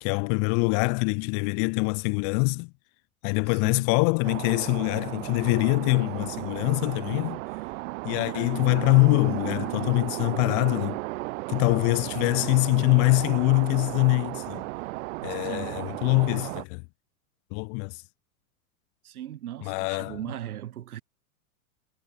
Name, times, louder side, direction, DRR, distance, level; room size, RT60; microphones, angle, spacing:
voice 1, 0.0-2.7 3.2-7.4 8.0-11.0 11.5-14.6 15.2-16.8 17.5-18.0 19.6-20.2, left 40 dB or more, 45° left, 0.8 m, -24 dB
voice 2, 3.5-3.9 12.1-12.6 15.3-15.8 19.0-21.0, right 12 dB, 85° right, 2.1 m, -39 dB
sound 1, 4.2-16.6, right 22 dB, 60° right, 2.8 m, -34 dB
hypercardioid pair, 115°, 43 cm